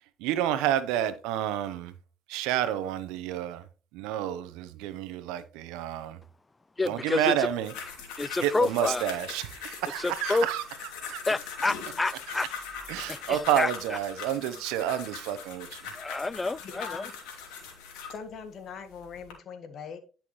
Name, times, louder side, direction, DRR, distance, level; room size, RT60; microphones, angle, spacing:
voice 1, 0.2-1.9 2.3-3.6 3.9-6.2 6.8-7.7 8.4-10.6 11.1-11.2 12.9-15.8, right 11 dB, 85° right, 0.9 m, -29 dB
voice 2, 6.8-7.3 8.2-9.1 10.0-10.5 11.3-12.5 13.1-13.7 16.0-17.0, left 3 dB, 20° left, 0.4 m, -28 dB
sound 1, 7.4-18.2 18.9-19.3, left 6 dB, 85° left, 2.6 m, -41 dB
voice 3, 16.6-17.1 18.1-20.0, left 6 dB, 60° left, 1.7 m, -41 dB
11.0 x 5.8 x 3.2 m
supercardioid pair, 75°, 0 cm